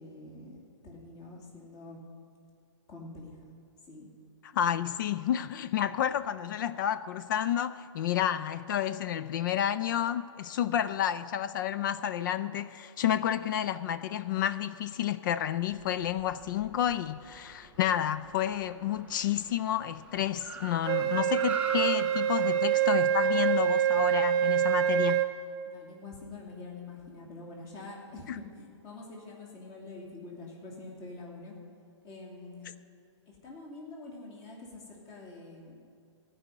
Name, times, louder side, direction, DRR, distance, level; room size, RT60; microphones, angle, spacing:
voice 1, 0.0-2.0 2.9-3.4 3.8-4.1 4.5-4.7 25.6-31.6 32.0-32.7 33.3-35.8, left 3 dB, 25° left, 2.5 m, -46 dB
voice 2, 4.6-25.2, left 10 dB, 40° left, 0.4 m, -30 dB
Car, 15.6-25.1, right 5 dB, 10° right, 0.7 m, -44 dB
Wind instrument woodwind instrument, 20.9-25.3, right 10 dB, 25° right, 1.0 m, -26 dB
15.5 x 5.5 x 9.1 m
hypercardioid pair, 135°, 15 cm